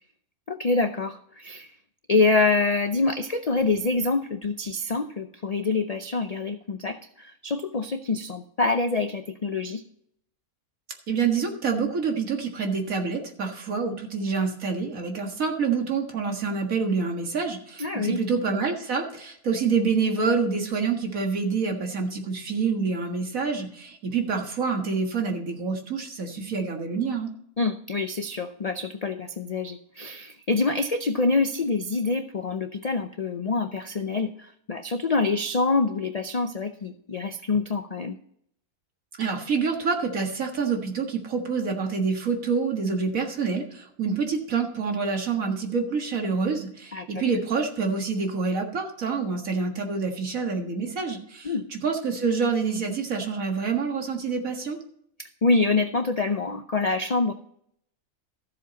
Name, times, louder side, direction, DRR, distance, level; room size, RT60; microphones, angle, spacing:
voice 1, 0.5-1.7 2.1-9.8 17.8-18.2 27.6-38.2 46.9-47.2 51.4-51.7 55.2-57.3, left 3 dB, 80° left, 8 dB, 0.3 m, -26 dB
voice 2, 11.1-27.3 39.2-54.8, right 5 dB, 65° right, 3 dB, 2.1 m, -27 dB
13.5 x 7.5 x 4.0 m, 0.68 s
omnidirectional pair, 1.6 m